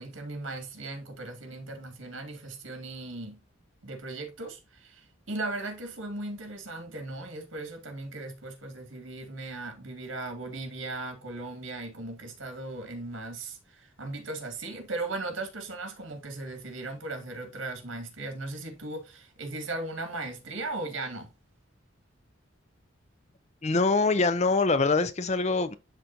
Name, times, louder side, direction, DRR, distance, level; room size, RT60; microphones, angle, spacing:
voice 1, 0.0-3.4 3.8-21.3, right 2 dB, 80° right, 2.2 m, -37 dB
voice 2, 23.6-25.8, left 3 dB, 35° left, 0.5 m, -24 dB
11.5 x 3.8 x 2.7 m
head